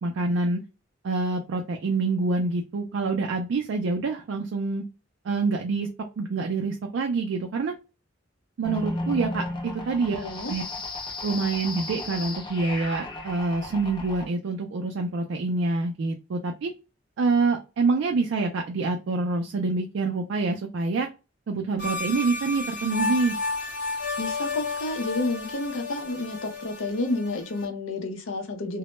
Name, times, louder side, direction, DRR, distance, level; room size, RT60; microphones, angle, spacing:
voice 1, 0.0-0.6 1.0-4.9 5.2-5.9 6.2-7.7 8.6-10.6 11.2-16.7 17.2-21.1 21.5-23.4, right 3 dB, 75° right, 0.3 m, -26 dB
sound 1, 8.6-14.3, left 2 dB, 25° left, 0.5 m, -34 dB
voice 2, 10.1-10.5 24.2-28.8, left 2 dB, 80° left, 0.6 m, -30 dB
sound 2, 21.8-27.7, left 3 dB, 55° left, 1.0 m, -32 dB
2.1 x 2.1 x 3.0 m
head